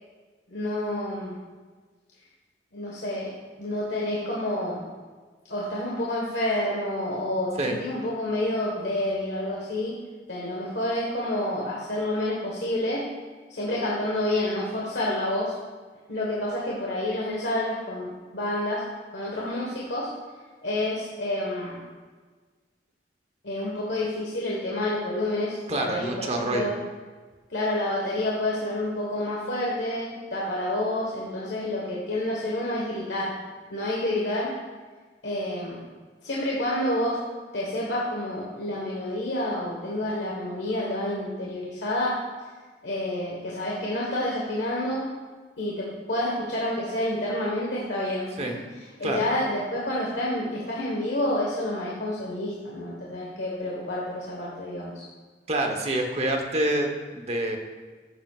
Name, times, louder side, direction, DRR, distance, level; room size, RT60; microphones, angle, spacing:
voice 1, 0.5-1.4 2.7-3.3 3.6-4.8 5.5-10.0 10.3-13.1 13.5-15.5 16.1-18.8 19.1-20.1 20.6-21.8 23.4-26.7 27.5-33.3 33.7-34.5 35.2-35.8 36.2-37.2 37.5-42.2 42.8-45.0 45.6-48.5 49.0-55.0, left 1 dB, 85° left, -4 dB, 1.5 m, -29 dB
voice 2, 25.7-26.7 48.4-48.5 49.0-49.2 55.5-57.6, right 1 dB, 35° right, 3 dB, 1.1 m, -27 dB
13.0 x 7.6 x 2.5 m, 1.4 s
head